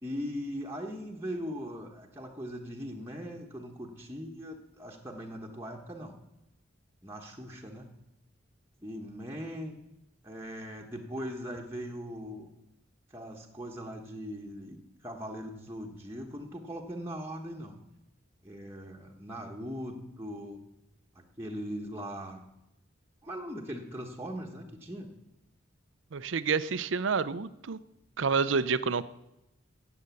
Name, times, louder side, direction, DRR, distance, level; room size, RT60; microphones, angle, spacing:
voice 1, 0.0-6.1 7.0-7.9 8.8-9.8 10.2-12.5 13.1-17.8 18.4-20.6 21.1-22.4 23.2-25.1, equal, 15° right, -1 dB, 1.2 m, -40 dB
voice 2, 26.1-27.8 28.2-29.0, right 5 dB, 75° right, 16 dB, 0.6 m, -28 dB
14.0 x 8.1 x 8.4 m, 0.93 s
head